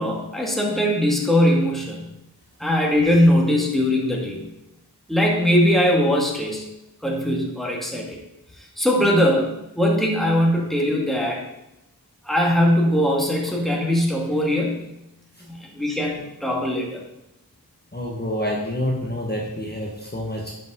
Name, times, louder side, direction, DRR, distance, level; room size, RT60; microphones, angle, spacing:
voice 1, 0.0-2.1 2.6-4.4 5.1-6.6 7.0-8.2 8.8-11.4 12.2-14.8 15.5-17.0, equal, ahead, -1 dB, 1.9 m, -20 dB
voice 2, 17.9-20.5, left 1 dB, 25° left, -2 dB, 1.4 m, -27 dB
11.0 x 5.4 x 3.7 m, 0.89 s
wide cardioid pair, 50°, 40 cm